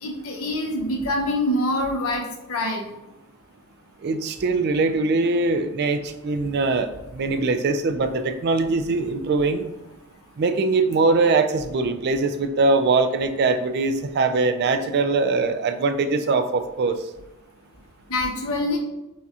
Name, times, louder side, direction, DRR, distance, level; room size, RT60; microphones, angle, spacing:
voice 1, 0.0-2.8 18.1-18.8, left 1 dB, 85° left, 1 dB, 0.9 m, -25 dB
voice 2, 4.0-9.7 10.4-17.0, right 3 dB, 50° right, 8 dB, 0.3 m, -22 dB
6.3 x 2.3 x 2.8 m, 0.96 s
head